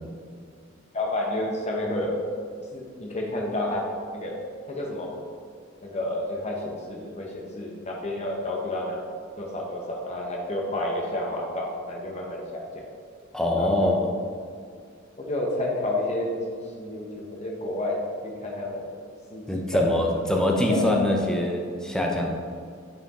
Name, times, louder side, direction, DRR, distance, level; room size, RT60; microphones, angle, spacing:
voice 1, 0.9-2.2 2.7-3.8 4.1-4.4 4.7-5.1 5.8-9.0 9.4-12.8 13.5-14.0 15.2-18.9 19.3-19.9 20.7-20.8, left 1 dB, 35° left, -1 dB, 0.7 m, -30 dB
voice 2, 13.3-14.1 19.5-22.3, left 1 dB, 5° left, 0 dB, 0.6 m, -23 dB
5.5 x 5.0 x 3.6 m, 2.2 s
head